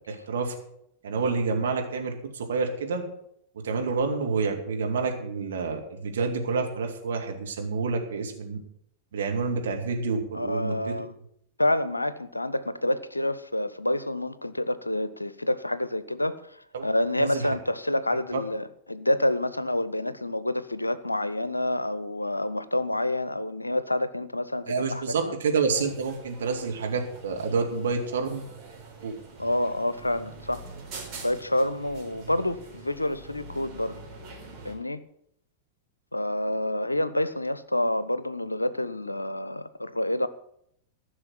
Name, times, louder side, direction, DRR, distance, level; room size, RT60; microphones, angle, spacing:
voice 1, 0.1-0.5 1.0-3.0 3.5-8.6 9.1-11.0 16.7-16.9 17.2-17.5 18.3-18.4 24.7-28.4 29.0-29.2, right 4 dB, 65° right, 2 dB, 2.3 m, -28 dB
voice 2, 10.3-11.1 11.6-16.6 16.8-25.4 29.4-30.6 31.2-34.0 34.6-35.0 36.1-40.3, left 1 dB, 85° left, 16 dB, 0.7 m, -28 dB
sound 1, 25.7-34.7, right 3 dB, 35° right, 4.5 m, -45 dB
14.5 x 6.3 x 7.9 m, 0.73 s
figure-of-eight pair, 90°, 0 cm